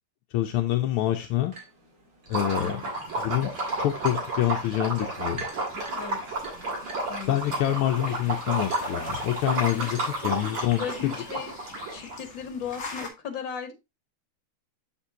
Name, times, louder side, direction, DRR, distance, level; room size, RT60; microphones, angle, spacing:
voice 1, 0.3-1.5 2.3-2.8 3.2-3.5 3.8-5.5 7.2-11.1, left 13 dB, 80° left, 5 dB, 1.6 m, -26 dB
sound 1, 1.1-10.9, right 3 dB, 35° right, 2.4 m, -50 dB
Liquid, 2.3-12.2, right 2 dB, 90° right, 3.6 m, -32 dB
voice 2, 2.6-2.9 5.9-6.4 7.1-7.4 9.7-9.9 10.2-10.4 10.8-11.5 11.9-13.7, left 7 dB, 60° left, 6 dB, 2.0 m, -36 dB
sound 2, 2.9-13.1, left 4 dB, 40° left, 1.5 m, -45 dB
7.1 x 6.9 x 2.8 m, 0.23 s
omnidirectional pair, 2.4 m